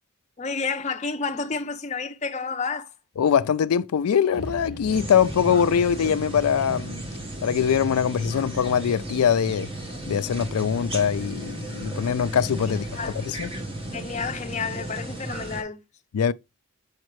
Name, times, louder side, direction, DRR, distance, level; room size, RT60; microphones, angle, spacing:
voice 1, 0.4-2.9 12.9-13.2 13.9-15.8, left 4 dB, 30° left, 0.5 m, -30 dB
voice 2, 3.2-7.0 7.4-9.7 10.1-12.9 13.2-13.5 16.1-16.3, left 7 dB, 85° left, 0.4 m, -22 dB
sound 1, 4.3-7.5, left 1 dB, 50° right, 3.2 m, -42 dB
sound 2, 4.9-15.6, right 1 dB, 25° right, 1.1 m, -34 dB
6.4 x 5.0 x 3.1 m
head